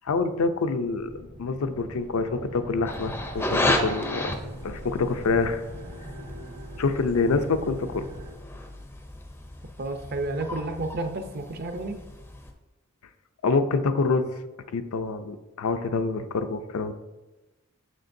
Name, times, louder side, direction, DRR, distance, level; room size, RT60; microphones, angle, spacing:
voice 1, 0.1-4.4 4.6-5.6 6.8-8.1 13.4-14.3 14.7-16.9, left 4 dB, 80° left, 9 dB, 0.5 m, -26 dB
Big Flying Saucer, 0.8-8.3, equal, 80° right, 1.9 m, -42 dB
sound 1, 2.9-12.5, left 1 dB, 10° left, 0.4 m, -33 dB
voice 2, 9.8-12.0, right 2 dB, 45° right, 7 dB, 0.5 m, -31 dB
6.5 x 6.5 x 2.6 m, 1.1 s
head